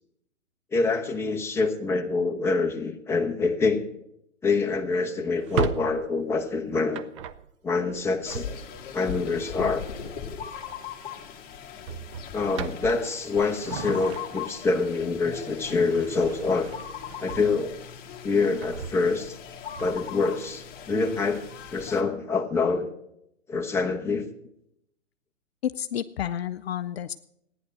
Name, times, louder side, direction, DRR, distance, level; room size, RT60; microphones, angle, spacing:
voice 1, 0.7-3.9 4.4-7.0 7.6-8.6 8.9-9.8 12.3-16.7 17.2-17.8 18.2-19.4 19.8-21.4 21.7-22.9 23.5-24.3, left 4 dB, 5° left, 2 dB, 1.1 m, -26 dB
Drawer open or close, 5.3-9.0 10.5-10.8 11.1-11.3 11.8-14.7 15.1-17.9 18.3-20.2, right 7 dB, 25° right, 0.5 m, -37 dB
sound 1, 8.3-22.0, left 7 dB, 25° left, 1.7 m, -39 dB
voice 2, 25.6-27.1, left 10 dB, 55° left, 12 dB, 0.6 m, -30 dB
15.0 x 9.9 x 7.5 m, 0.79 s
figure-of-eight pair, 125°, 38 cm